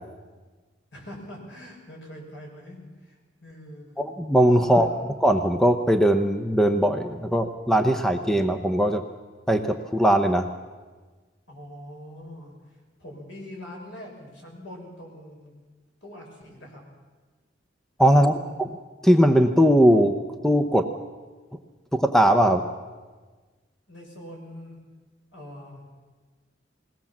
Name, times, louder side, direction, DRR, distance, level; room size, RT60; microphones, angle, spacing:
voice 1, 0.9-4.0 4.6-5.1 11.5-12.5 13.0-15.5 16.0-16.8 18.2-18.7 23.9-24.8 25.3-25.9, left 1 dB, 75° left, -1 dB, 6.4 m, -43 dB
voice 2, 4.0-4.9 5.2-9.0 9.5-10.5 18.0-18.8 19.0-20.9 21.9-22.6, equal, 5° left, 7 dB, 0.8 m, -20 dB
21.5 x 17.5 x 7.3 m, 1.4 s
head